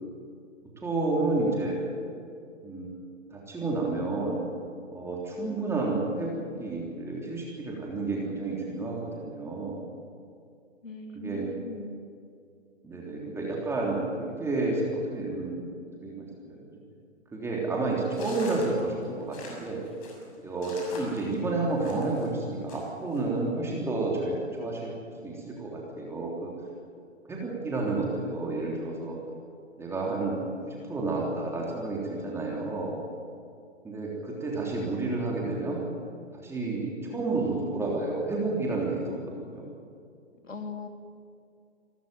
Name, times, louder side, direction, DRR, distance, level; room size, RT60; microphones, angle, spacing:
voice 1, 0.8-1.8 2.6-4.4 4.9-9.9 11.1-11.5 12.8-15.7 16.0-16.6 17.3-19.8 20.4-24.9 25.2-26.5 27.3-29.2 29.8-33.0 33.8-35.8 36.3-39.7, right 2 dB, 5° right, -3 dB, 3.3 m, -30 dB
voice 2, 10.8-11.9 40.4-40.9, left 3 dB, 90° left, 5 dB, 3.0 m, -39 dB
sound 1, 18.1-22.3 22.7-23.2, left 2 dB, 30° left, 6.5 m, -44 dB
27.5 x 13.5 x 9.2 m, 2.4 s
figure-of-eight pair, 140°, 38 cm